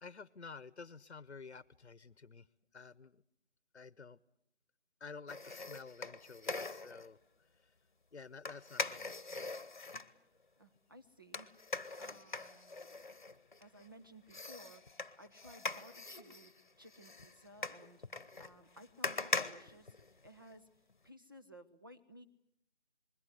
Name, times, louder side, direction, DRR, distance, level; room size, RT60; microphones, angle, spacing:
voice 1, 0.0-2.5 2.7-3.2 3.7-4.2 5.0-7.2 7.5-7.7 8.1-9.1, left 4 dB, 65° left, 17 dB, 1.0 m, -51 dB
sound 1, 5.3-7.1 8.4-10.1 11.3-13.9 14.3-20.5 20.9-21.0, left 3 dB, 45° left, 1.3 m, -42 dB
voice 2, 10.6-11.5 12.0-12.8 13.6-20.7 21.0-22.3, equal, 20° right, 6 dB, 1.0 m, -57 dB
27.5 x 21.5 x 8.1 m, 0.71 s
figure-of-eight pair, 170°, 35 cm